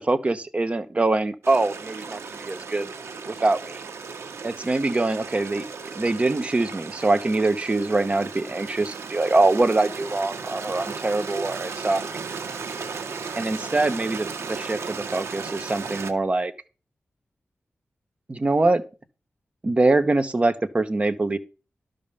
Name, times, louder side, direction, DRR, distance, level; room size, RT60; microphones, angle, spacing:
voice 1, 0.0-2.9 3.3-3.8 4.4-5.6 5.9-12.0 13.4-16.5 18.3-18.8 19.6-21.4, right 2 dB, 30° right, 9 dB, 1.1 m, -23 dB
Stream, 1.4-16.1, right 5 dB, 80° right, 1.2 m, -35 dB
12.0 x 5.2 x 6.9 m, 0.32 s
wide cardioid pair, 125°, 4 cm